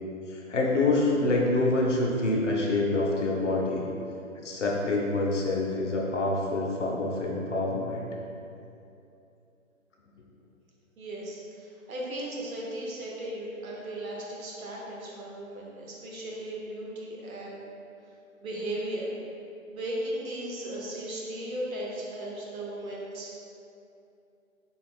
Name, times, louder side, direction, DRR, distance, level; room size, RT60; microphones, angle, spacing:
voice 1, 0.3-3.8 4.4-8.1, left 2 dB, 60° left, -2 dB, 0.7 m, -26 dB
voice 2, 11.0-17.7 18.4-19.1 19.7-23.3, right 1 dB, 80° right, -3 dB, 1.0 m, -36 dB
3.2 x 2.4 x 3.4 m, 2.7 s
hypercardioid pair, 175°, 41 cm